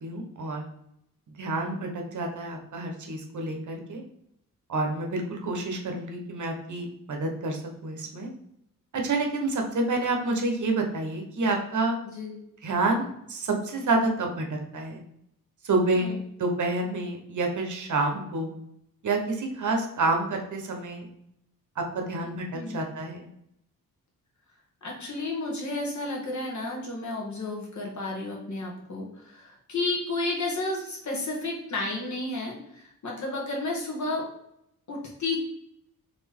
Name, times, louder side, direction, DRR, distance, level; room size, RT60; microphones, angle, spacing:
voice 1, 0.0-0.7 1.4-4.0 4.7-8.3 9.0-12.0 12.6-15.0 15.6-16.1 16.4-18.5 19.0-21.1 21.8-23.3, right 2 dB, 60° right, 2 dB, 1.0 m, -28 dB
voice 2, 12.0-12.4 15.9-16.2 22.5-22.9 24.8-34.3 34.9-35.4, left 2 dB, 55° left, -2 dB, 1.6 m, -32 dB
4.2 x 3.5 x 3.6 m, 0.76 s
wide cardioid pair, 115°, 35 cm